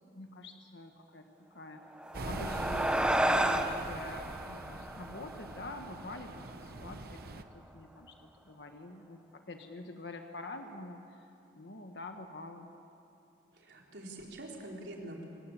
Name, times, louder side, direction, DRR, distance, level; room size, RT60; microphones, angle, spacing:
voice 1, 0.1-1.8 2.2-11.3 11.5-12.7, left 2 dB, 70° left, 5 dB, 1.4 m, -46 dB
sound 1, 1.9-6.6, right 1 dB, 5° right, 0.9 m, -32 dB
sound 2, 2.1-7.4, right 2 dB, 60° right, 1.0 m, -43 dB
voice 2, 13.5-15.3, right 1 dB, 80° right, -1 dB, 3.9 m, -45 dB
27.0 x 17.0 x 8.5 m, 2.8 s
head